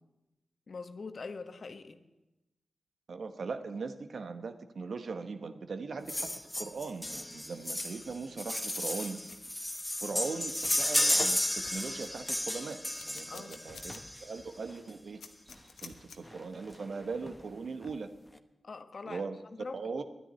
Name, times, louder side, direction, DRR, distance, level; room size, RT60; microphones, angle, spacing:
voice 1, 0.7-2.0 13.3-13.5 18.6-19.8, left 4 dB, 65° left, 9 dB, 1.2 m, -43 dB
voice 2, 3.1-9.2 10.0-15.2 15.8-18.1 19.1-19.4 19.7-20.0, right 4 dB, 70° right, 9 dB, 1.1 m, -40 dB
sound 1, 6.1-14.4 15.5-15.6 15.9-16.0 16.2-16.4 16.7-17.3 17.8-17.9, left 1 dB, 15° left, 1.1 m, -33 dB
sound 2, 9.3-9.4 10.3-10.4 10.6-10.9 11.3-11.4 11.7-12.4 12.9-14.0 14.4-14.5 15.2-16.2, left 5 dB, 85° left, 1.1 m, -50 dB
11.0 x 10.0 x 9.7 m, 0.99 s
cardioid pair, 40°, 0 cm